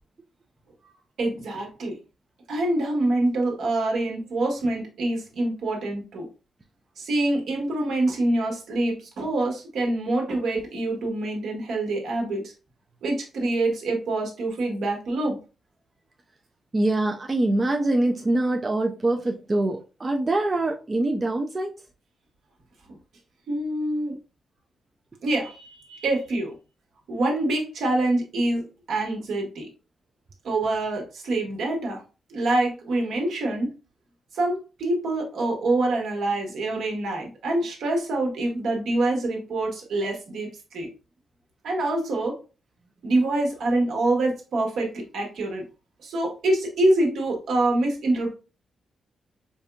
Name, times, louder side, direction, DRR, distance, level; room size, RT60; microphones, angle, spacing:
voice 1, 1.2-2.0 2.5-6.3 7.0-12.5 13.0-15.4 23.5-24.1 25.2-26.5 27.1-29.7 30.4-32.0 32.3-33.7 34.3-40.9 41.6-42.4 43.0-45.7 46.0-48.3, right 2 dB, 75° right, 1.3 m, -25 dB
voice 2, 16.7-21.8, right 2 dB, 25° right, 0.4 m, -24 dB
4.9 x 2.6 x 2.3 m
wide cardioid pair, 130°, 0 cm